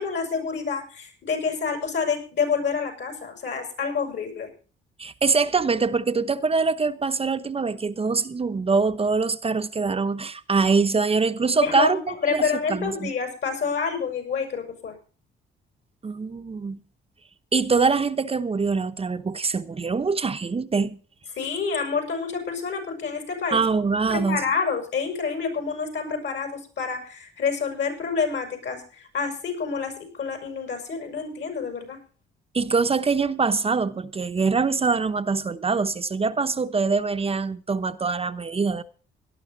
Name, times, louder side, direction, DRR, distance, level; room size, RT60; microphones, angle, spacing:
voice 1, 0.0-4.5 11.6-14.9 21.3-23.6 24.1-32.0, left 5 dB, 65° left, 6.7 m, -28 dB
voice 2, 5.0-12.0 12.3-13.1 16.0-16.8 17.5-21.0 23.5-24.4 32.5-38.8, right 4 dB, 30° right, 0.9 m, -24 dB
18.0 x 12.0 x 3.9 m
cardioid pair, 90°, 20 cm